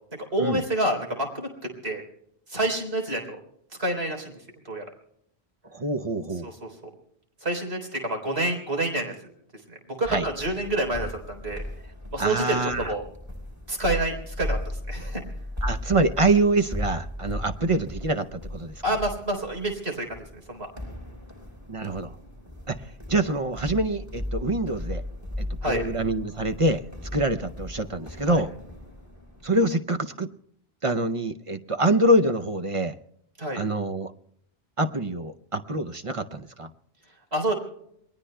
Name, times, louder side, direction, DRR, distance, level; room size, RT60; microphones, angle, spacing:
voice 1, 0.3-1.5 1.8-2.0 2.5-3.4 3.8-4.3 4.7-4.8 6.6-6.7 7.4-9.1 9.7-11.6 12.1-13.0 13.7-14.6 14.9-15.2 18.8-20.1 20.5-20.7 25.6-25.8 28.2-28.4 33.4-33.6 37.3-37.5, right 1 dB, 75° right, 3 dB, 4.1 m, -27 dB
voice 2, 5.7-6.5 10.1-10.3 12.2-12.9 15.6-18.8 21.7-22.1 22.7-22.8 23.1-25.0 25.4-26.8 27.1-28.5 29.4-30.3 30.8-32.9 33.5-34.1 34.8-36.7, right 2 dB, 35° right, 7 dB, 0.6 m, -25 dB
sound 1, 10.0-29.6, left 1 dB, 15° right, 4.5 m, -36 dB
28.5 x 21.0 x 2.3 m, 0.75 s
omnidirectional pair, 1.1 m